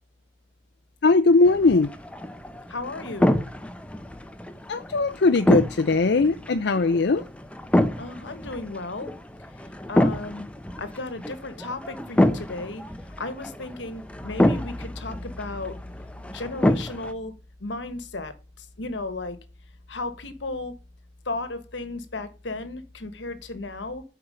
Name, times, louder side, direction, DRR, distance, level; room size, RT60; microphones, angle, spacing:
voice 1, 1.0-1.9 4.7-7.2, left 3 dB, 65° left, 9 dB, 0.6 m, -20 dB
sound 1, 1.4-17.1, left 1 dB, 5° left, 0.7 m, -27 dB
voice 2, 2.7-3.3 8.0-9.1 9.9-10.5 10.8-12.8 13.2-15.9 16.3-17.3 17.6-19.4 19.9-20.7 21.2-24.0, left 2 dB, 80° left, 11 dB, 1.3 m, -34 dB
8.4 x 4.7 x 6.5 m, 0.31 s
head